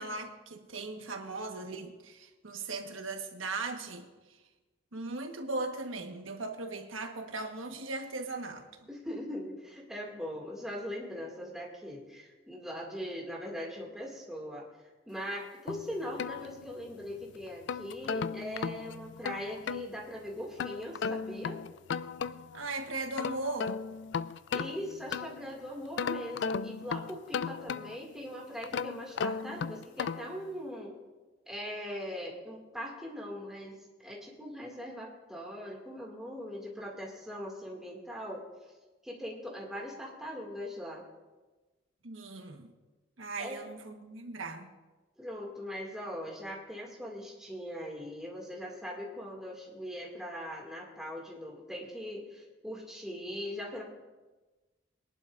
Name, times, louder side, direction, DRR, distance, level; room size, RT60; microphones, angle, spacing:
voice 1, 0.0-4.1 4.9-8.7 22.5-23.8 42.0-42.7 43.2-44.7, right 3 dB, 90° right, 4 dB, 1.4 m, -38 dB
voice 2, 8.9-14.7 15.1-21.6 24.5-31.0 31.5-38.5 39.0-41.0 43.4-43.6 45.2-53.8, equal, 5° right, -3 dB, 2.2 m, -40 dB
sound 1, 15.7-17.0 17.5-19.9 20.6-22.6 23.0-25.5 26.0-28.1 28.6-30.4, left 5 dB, 65° left, 0.3 m, -36 dB
22.5 x 11.0 x 2.6 m, 1.2 s
head